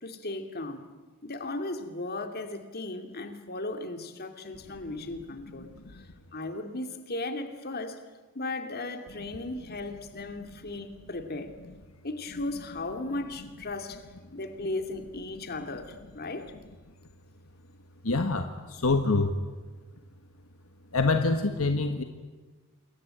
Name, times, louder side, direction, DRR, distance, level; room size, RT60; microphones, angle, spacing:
voice 1, 0.0-0.9 1.2-8.0 8.3-11.6 12.0-14.0 14.3-16.5, left 2 dB, 45° left, 2.6 m, -36 dB
voice 2, 18.0-19.3 20.9-22.0, left 3 dB, 70° left, 1.6 m, -25 dB
28.0 x 22.5 x 9.0 m
head